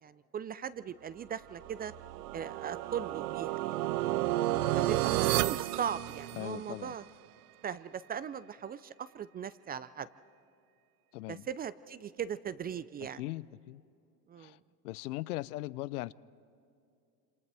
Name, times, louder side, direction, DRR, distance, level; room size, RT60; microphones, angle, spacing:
voice 1, 0.0-1.9 2.3-3.8 4.7-7.0 7.6-10.1 11.3-13.2 14.3-14.6, right 8 dB, 20° right, 16 dB, 0.4 m, -39 dB
sound 1, 1.6-6.8, right 15 dB, 75° right, 0.6 m, -32 dB
voice 2, 6.4-6.9 11.1-11.4 13.2-13.8 14.4-14.6 14.8-16.1, left 17 dB, 75° left, 20 dB, 0.6 m, -39 dB
28.0 x 27.0 x 3.4 m, 2.5 s
hypercardioid pair, 80°, 46 cm